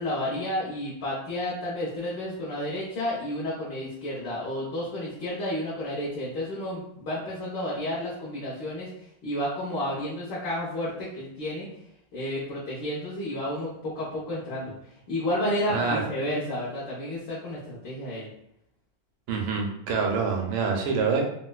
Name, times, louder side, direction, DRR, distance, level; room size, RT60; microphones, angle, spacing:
voice 1, 0.0-8.9 9.2-11.7 12.1-14.7 15.1-18.3, left 1 dB, 65° left, -9 dB, 1.4 m, -31 dB
voice 2, 15.7-16.0 19.3-21.2, right 5 dB, 75° right, 1 dB, 1.4 m, -26 dB
4.1 x 2.1 x 2.2 m, 0.77 s
omnidirectional pair, 2.3 m